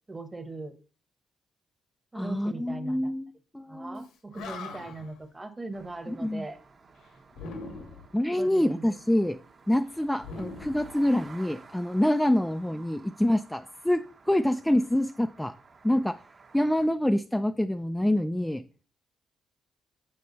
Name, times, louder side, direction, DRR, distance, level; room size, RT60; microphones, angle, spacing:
voice 1, 0.1-0.7 2.1-3.1 3.7-6.6 8.3-9.0, right 3 dB, 20° right, 9 dB, 1.1 m, -40 dB
voice 2, 2.1-4.0 6.1-6.4 8.1-9.4 9.7-14.0 14.3-15.6 15.8-16.2 16.5-18.6, left 1 dB, 5° left, 9 dB, 0.4 m, -26 dB
Animal, 4.0-4.1 4.3-5.2 7.3-8.2 10.2-11.5, left 3 dB, 85° left, 1.5 m, -41 dB
sound 1, 5.7-16.9, right 4 dB, 40° right, 1.1 m, -53 dB
6.7 x 6.4 x 4.0 m, 0.38 s
cardioid pair, 90°, 0 cm